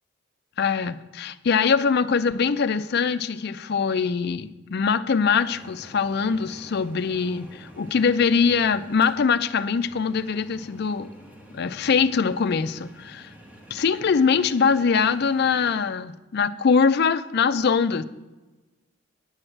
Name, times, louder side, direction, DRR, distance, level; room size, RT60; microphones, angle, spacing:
voice 1, 0.6-11.1 11.5-13.3 13.7-18.0, left 5 dB, 55° left, 0.4 m, -23 dB
sound 1, 5.4-15.7, equal, 5° right, 1.3 m, -48 dB
9.6 x 4.7 x 7.7 m
head